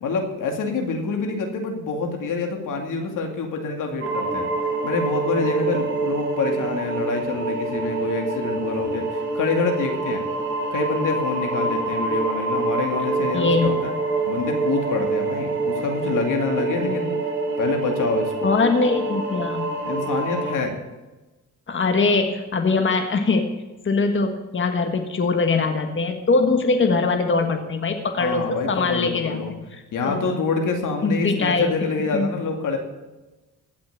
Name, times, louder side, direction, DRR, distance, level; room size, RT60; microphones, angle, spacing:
voice 1, 0.0-4.5 4.8-10.2 10.7-13.9 14.2-17.1 17.6-18.5 19.8-20.7 28.2-29.5 29.9-32.8, left 4 dB, 85° left, 3 dB, 2.3 m, -26 dB
sound 1, 4.0-20.5, right 3 dB, 40° right, 5.3 m, -26 dB
voice 2, 13.3-13.7 16.8-17.2 18.4-19.7 21.7-23.5 23.8-30.2 31.0-31.7 32.1-32.3, left 3 dB, 40° left, 5 dB, 1.5 m, -22 dB
16.0 x 6.0 x 8.6 m, 1.1 s
cardioid pair, 95°, 31 cm